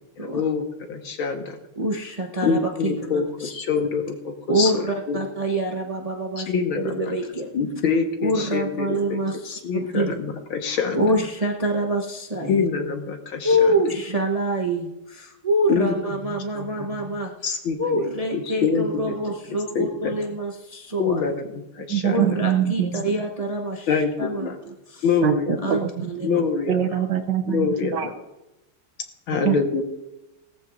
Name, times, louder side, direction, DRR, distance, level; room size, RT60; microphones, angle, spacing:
voice 1, 0.3-1.6 2.4-5.2 6.4-7.1 7.5-9.2 9.4-11.0 12.5-13.7 15.7-15.9 16.5-17.0 17.4-19.3 19.8-20.1 21.0-22.4 23.9-24.6 25.0-25.6 26.2-26.8 27.5-28.1 29.3-29.8, left 5 dB, 75° left, 4 dB, 2.2 m, -25 dB
voice 2, 1.8-3.5 4.5-7.5 8.2-10.1 10.9-12.7 13.4-21.2 22.1-23.9 24.2-25.0 25.6-26.4, right 1 dB, 30° right, 0 dB, 0.7 m, -26 dB
voice 3, 21.9-23.0 25.2-25.3 25.8-26.1 26.4-28.1 29.4-29.6, right 10 dB, 65° right, 8 dB, 1.3 m, -24 dB
18.5 x 14.0 x 2.6 m, 0.98 s
omnidirectional pair, 2.3 m